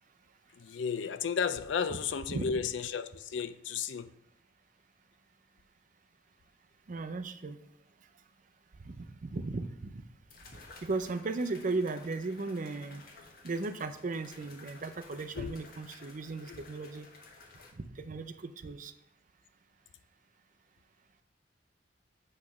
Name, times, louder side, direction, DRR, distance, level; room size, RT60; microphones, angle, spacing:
voice 1, 0.5-4.1 15.4-15.5 16.5-16.6, left 6 dB, 85° left, 0.4 m, -33 dB
voice 2, 6.9-7.6 8.8-10.0 10.8-13.0 13.4-17.1 17.8-18.9, right 3 dB, 45° right, 0.5 m, -36 dB
sound 1, 9.3-9.4 10.3-17.7, left 3 dB, 55° left, 1.2 m, -54 dB
8.3 x 3.2 x 5.8 m
head